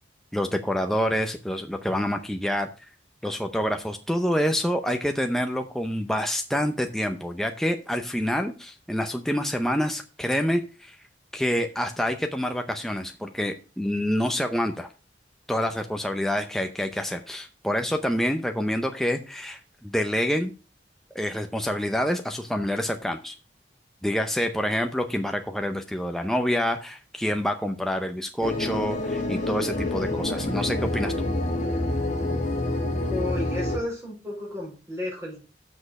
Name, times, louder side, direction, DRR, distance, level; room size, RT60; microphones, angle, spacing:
voice 1, 0.3-2.7 3.2-11.0 11.3-14.9 15.5-20.5 21.1-23.4 24.0-31.3, equal, ahead, 5 dB, 0.6 m, -27 dB
sound 1, 28.4-33.8, left 1 dB, 45° left, 1.7 m, -27 dB
voice 2, 33.1-35.4, left 1 dB, 15° right, -4 dB, 4.6 m, -32 dB
7.5 x 6.3 x 6.4 m, 0.33 s
head